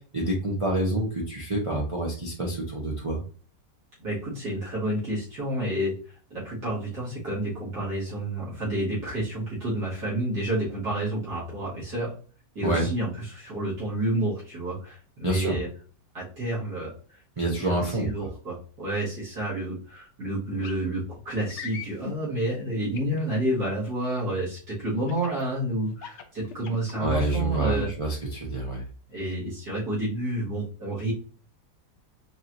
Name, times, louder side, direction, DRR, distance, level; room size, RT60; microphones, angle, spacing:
voice 1, 0.1-3.2 12.6-12.9 15.2-15.6 17.4-18.1 27.0-28.8, right 2 dB, 30° right, -3 dB, 0.6 m, -27 dB
voice 2, 4.0-5.9 6.3-12.1 12.6-15.7 16.1-16.9 17.4-27.9 29.1-31.1, right 1 dB, 70° right, -9 dB, 2.6 m, -30 dB
sound 1, 20.6-20.8 21.5-22.2 22.9-23.6 25.1-25.4 25.9-27.0 27.5-27.9, left 6 dB, 65° left, 0.7 m, -39 dB
5.5 x 3.0 x 2.6 m, 0.41 s
omnidirectional pair, 1.8 m